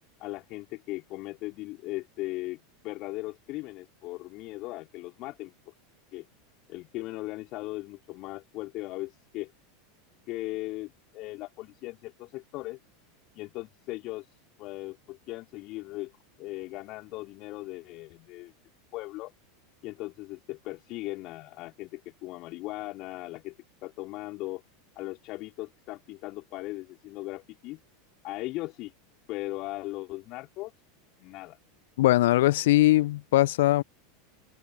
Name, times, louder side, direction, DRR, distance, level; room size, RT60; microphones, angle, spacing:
voice 1, 0.2-5.7 6.1-6.3 6.7-9.5 10.3-12.8 13.3-14.3 14.6-16.1 16.4-18.5 18.9-19.3 19.8-23.6 23.8-24.6 24.9-27.8 28.2-28.9 29.3-30.7 31.2-31.6, left 20 dB, 45° left, 4.5 m, -38 dB
voice 2, 32.0-33.8, left 16 dB, 65° left, 0.8 m, -21 dB
figure-of-eight pair, 85°, 0 cm